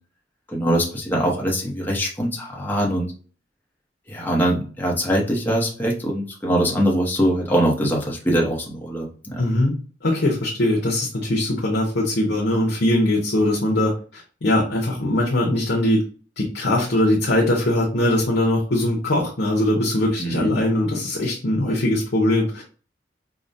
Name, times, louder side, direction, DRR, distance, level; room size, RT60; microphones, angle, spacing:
voice 1, 0.5-3.1 4.1-9.4 20.2-20.5, equal, 10° left, -3 dB, 0.8 m, -22 dB
voice 2, 9.4-9.7 10.0-16.0 16.4-22.6, left 1 dB, 65° left, -2 dB, 0.8 m, -21 dB
4.8 x 2.1 x 2.6 m, 0.40 s
head